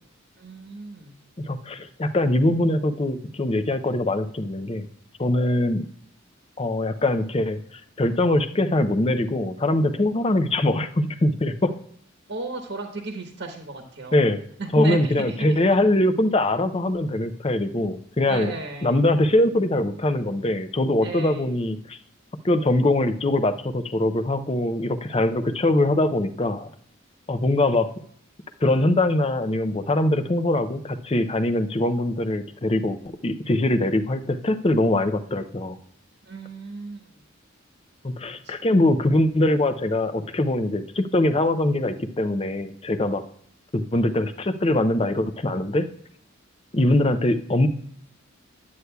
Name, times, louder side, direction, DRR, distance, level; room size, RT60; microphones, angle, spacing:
voice 1, 0.4-1.1 12.3-14.2 14.6-15.6 18.3-19.0 21.0-21.5 36.3-37.0 38.4-38.5, right 2 dB, 55° right, 3 dB, 1.1 m, -34 dB
voice 2, 1.4-4.9 5.2-5.8 6.6-11.7 14.1-14.4 14.7-18.5 18.8-22.0 22.4-26.7 27.3-27.9 28.6-35.8 38.0-43.2 43.7-45.9 46.7-47.7, left 1 dB, 25° left, 10 dB, 0.5 m, -22 dB
9.6 x 7.9 x 2.2 m, 0.62 s
head